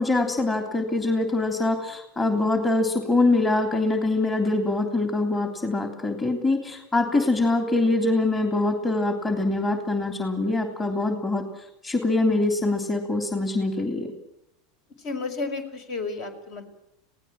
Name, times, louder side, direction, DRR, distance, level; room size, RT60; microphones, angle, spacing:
voice 1, 0.0-11.4 11.8-14.1, left 2 dB, 20° left, 5 dB, 3.3 m, -24 dB
voice 2, 15.0-16.6, left 3 dB, 60° left, 8 dB, 5.5 m, -32 dB
27.0 x 18.0 x 7.6 m, 0.85 s
hypercardioid pair, 95°, 0 cm